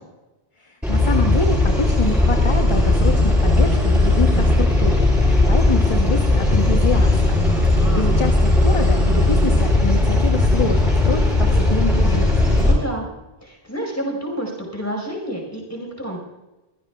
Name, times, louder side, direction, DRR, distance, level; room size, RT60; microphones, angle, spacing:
voice 1, 0.6-7.4 7.7-12.4, left 3 dB, 30° left, 3 dB, 1.0 m, -26 dB
sound 1, 0.8-12.7, left 2 dB, ahead, 6.2 m, -17 dB
voice 2, 7.3-8.1 12.6-13.1 13.4-16.2, equal, 15° left, 0 dB, 5.0 m, -29 dB
24.0 x 16.0 x 2.4 m, 1.1 s
omnidirectional pair, 1.0 m